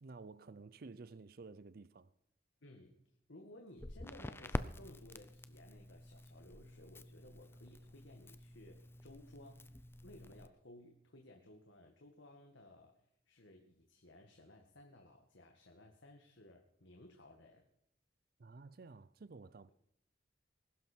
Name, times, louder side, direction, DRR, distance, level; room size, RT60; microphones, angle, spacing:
voice 1, 0.0-2.1 18.4-19.7, right 3 dB, 50° right, 0.5 m, -53 dB
voice 2, 2.6-3.0 3.3-17.7, left 1 dB, 85° left, 1.8 m, -58 dB
Crackle, 3.8-10.5, left 1 dB, 10° left, 0.5 m, -47 dB
20.5 x 12.0 x 4.5 m
head